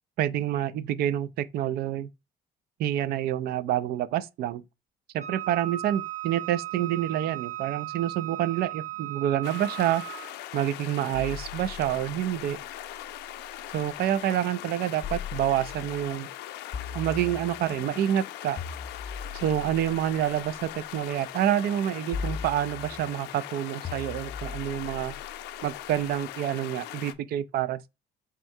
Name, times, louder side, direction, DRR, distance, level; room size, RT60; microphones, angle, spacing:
voice 1, 0.2-2.1 2.8-4.6 5.1-10.0 10.5-12.6 13.7-16.3 16.9-18.6 19.3-25.1 25.6-27.9, right 11 dB, 65° right, 0.4 m, -28 dB
Wind instrument woodwind instrument, 5.2-10.4, right 16 dB, 45° right, 1.3 m, -36 dB
sound 1, 9.4-27.1, left 14 dB, 85° left, 0.5 m, -40 dB
sound 2, 11.1-13.9 15.0-16.1 16.7-17.8 18.6-20.8 22.1-23.2 23.8-26.0, left 5 dB, 35° left, 0.6 m, -39 dB
4.3 x 3.6 x 2.6 m
cardioid pair, 110°, 17 cm